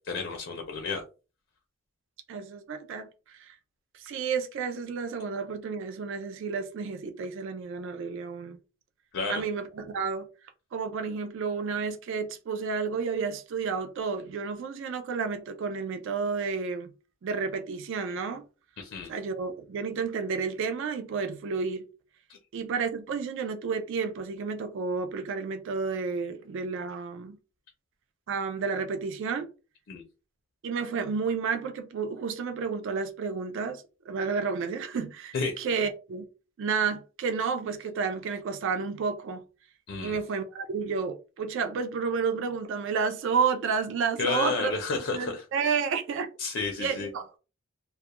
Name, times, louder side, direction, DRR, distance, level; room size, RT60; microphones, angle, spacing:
voice 1, 0.0-1.0 9.1-9.4 18.8-19.1 22.3-22.4 29.9-30.0 35.3-35.6 39.9-40.2 44.2-45.8 46.4-47.1, left 4 dB, 55° left, 0.5 m, -31 dB
voice 2, 2.3-3.1 3.4-3.6 3.9-8.6 9.3-10.3 10.7-16.9 17.2-18.4 19.1-21.8 22.5-27.4 28.3-29.5 30.6-36.3 36.6-39.4 40.0-46.3 46.8-47.2, right 5 dB, 60° right, 0.3 m, -31 dB
2.3 x 2.1 x 2.8 m
head